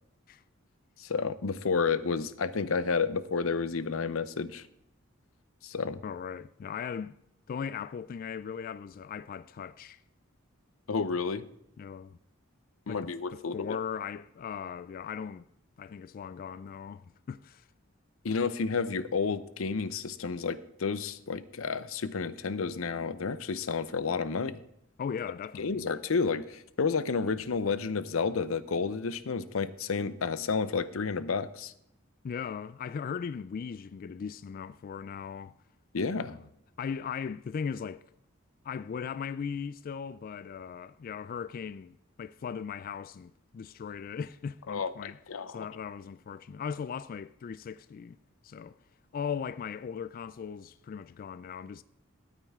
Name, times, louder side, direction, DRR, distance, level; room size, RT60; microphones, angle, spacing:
voice 1, 1.0-4.7 5.6-6.0 10.9-11.4 12.9-13.8 18.2-24.6 25.6-31.7 35.9-36.4 44.7-45.7, left 5 dB, 90° left, 0.7 m, -31 dB
voice 2, 6.0-7.2 7.5-10.0 11.8-12.2 12.9-15.5 15.8-17.7 25.0-25.8 32.2-35.5 36.3-36.4 36.8-38.0 38.6-45.2 45.5-48.2 48.4-48.8 49.1-51.8, left 7 dB, 45° left, 0.3 m, -38 dB
13.5 x 9.0 x 3.6 m
head